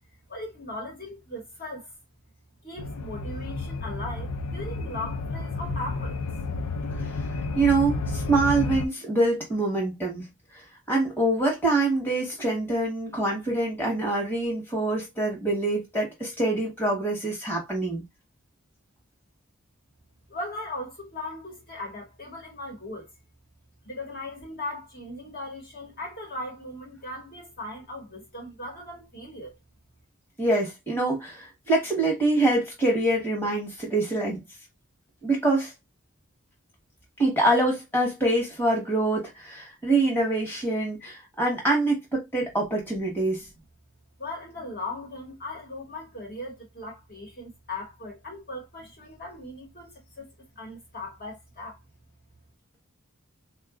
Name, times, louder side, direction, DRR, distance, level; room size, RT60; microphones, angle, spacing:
voice 1, 0.3-1.9 2.6-6.2 20.3-23.1 23.8-29.6 44.2-51.8, left 2 dB, 40° left, 1.2 m, -38 dB
sound 1, 2.8-8.9, left 3 dB, 80° left, 0.4 m, -31 dB
voice 2, 7.5-10.3 10.5-18.0 30.4-34.4 35.2-35.7 37.2-43.4, right 2 dB, 10° left, 1.1 m, -25 dB
3.7 x 2.4 x 2.4 m
head